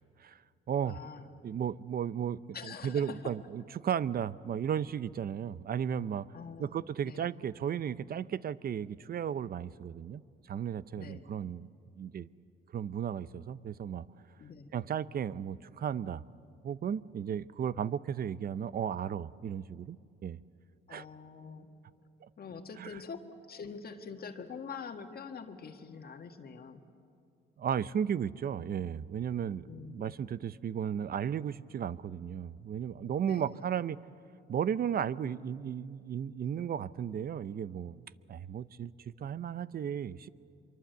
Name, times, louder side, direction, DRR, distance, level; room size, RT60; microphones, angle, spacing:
voice 1, 0.8-1.3 2.5-3.4 6.3-7.2 11.0-11.3 14.4-14.7 20.9-21.9 22.4-26.8 29.6-30.1 33.2-33.7, left 5 dB, 50° left, 5 dB, 1.7 m, -45 dB
voice 2, 1.4-6.3 6.6-10.2 10.5-11.7 12.0-12.3 12.7-14.1 14.7-16.2 16.6-20.4 20.9-21.0 22.2-22.3 22.8-22.9 27.6-34.0 34.5-40.3, right 8 dB, 50° right, 17 dB, 0.6 m, -35 dB
24.5 x 23.5 x 8.1 m, 2.5 s
cardioid pair, 90°, 20 cm